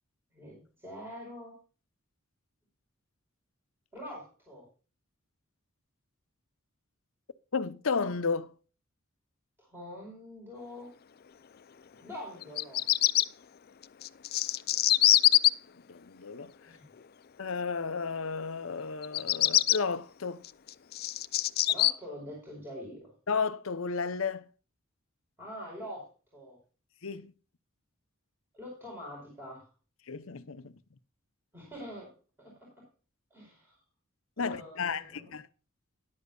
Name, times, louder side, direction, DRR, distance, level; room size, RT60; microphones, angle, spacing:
voice 1, 0.3-1.6 3.9-4.7 9.6-10.9 12.0-12.8 16.6-16.9 21.7-23.1 25.4-26.6 28.5-29.7 31.5-32.8 33.3-33.8 34.4-35.3, equal, 10° right, 4.6 m, -45 dB
voice 2, 7.5-8.5 15.9-16.5 17.4-20.4 23.3-24.4 27.0-27.3 30.1-30.8 34.4-35.4, left 5 dB, 75° left, 0.8 m, -33 dB
Bird vocalization bird call bird song, 12.4-13.2 14.0-15.5 19.0-19.8 20.4-21.9, left 14 dB, 50° left, 0.4 m, -23 dB
13.5 x 11.0 x 2.4 m
head